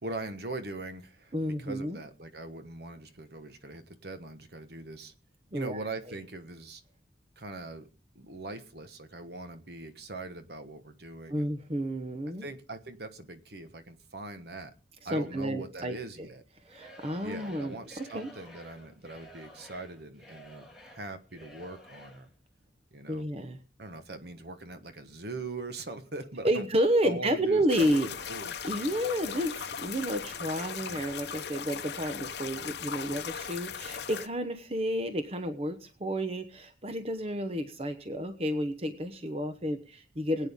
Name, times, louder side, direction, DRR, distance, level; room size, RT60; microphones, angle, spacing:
voice 1, 0.0-5.1 5.5-6.8 7.4-7.9 8.1-11.5 12.4-14.7 15.0-16.4 17.2-22.3 22.9-23.2 23.8-26.6 27.0-28.6, right 2 dB, 60° right, 9 dB, 1.4 m, -41 dB
voice 2, 1.3-2.0 5.5-5.8 11.3-12.5 15.1-16.0 16.7-18.3 23.1-23.6 26.4-28.1 28.6-40.5, equal, 30° right, 8 dB, 1.0 m, -31 dB
Singing / Crowd, 16.6-22.3, equal, ahead, 2.5 m, -52 dB
sound 1, 27.7-34.3, left 7 dB, 60° left, 0.8 m, -38 dB
21.0 x 9.0 x 3.7 m, 0.37 s
head